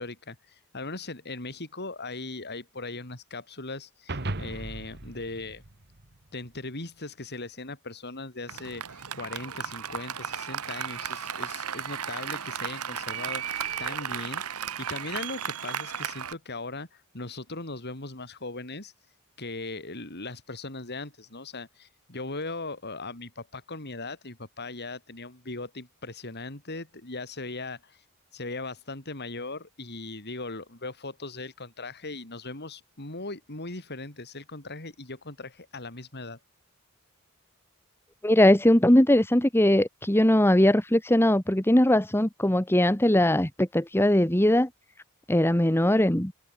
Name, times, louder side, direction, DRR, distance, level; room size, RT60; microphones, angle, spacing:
voice 1, 0.0-5.6 6.3-18.9 19.4-28.0 28.3-36.4, left 3 dB, 50° left, 4.5 m, -39 dB
sound 1, 4.1-6.6, right 2 dB, 50° right, 1.9 m, -37 dB
Applause, 8.5-16.3, right 8 dB, 85° right, 1.7 m, -34 dB
voice 2, 38.2-44.7 45.3-46.3, left 1 dB, 10° left, 1.5 m, -20 dB
head